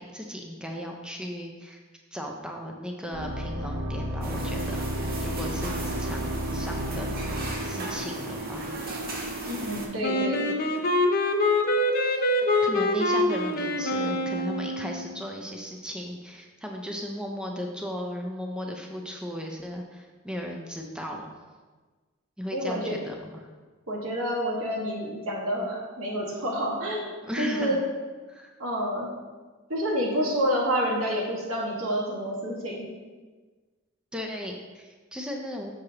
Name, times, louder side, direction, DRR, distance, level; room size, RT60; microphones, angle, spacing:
voice 1, 0.0-1.8 2.1-4.9 5.2-8.7 12.0-21.3 22.4-23.5 27.2-27.8 28.3-28.5 34.1-35.7, equal, 5° right, 1 dB, 0.5 m, -36 dB
sound 1, 3.1-8.4, equal, 65° right, 1.1 m, -33 dB
sound 2, 4.2-9.9, right 2 dB, 45° right, 0.9 m, -35 dB
voice 2, 9.5-10.5 22.5-23.0 23.9-27.1 27.4-27.8 28.6-29.1 29.7-32.9, equal, 85° right, -3 dB, 1.6 m, -28 dB
Wind instrument woodwind instrument, 10.0-15.1, left 1 dB, 45° left, 0.6 m, -25 dB
6.4 x 6.1 x 2.9 m, 1.3 s
head